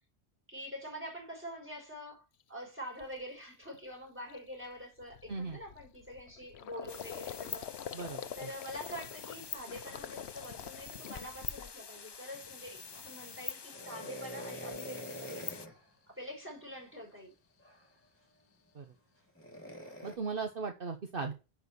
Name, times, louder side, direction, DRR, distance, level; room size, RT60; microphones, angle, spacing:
voice 1, 0.5-7.7 8.4-15.4 16.1-17.3, equal, 10° right, 5.3 m, -45 dB
Gurgling, 2.4-2.5 3.0-3.2 3.6-12.1 12.4-13.1, left 9 dB, 75° left, 0.9 m, -46 dB
sound 1, 6.9-15.7, left 5 dB, 35° left, 0.4 m, -46 dB
voice 2, 7.9-8.5 18.7-18.9 20.0-21.3, right 4 dB, 60° right, 1.3 m, -37 dB
sound 2, 13.7-15.8 17.6-17.8 19.4-20.2, equal, 10° left, 2.9 m, -44 dB
10.5 x 4.7 x 6.8 m
omnidirectional pair, 1.1 m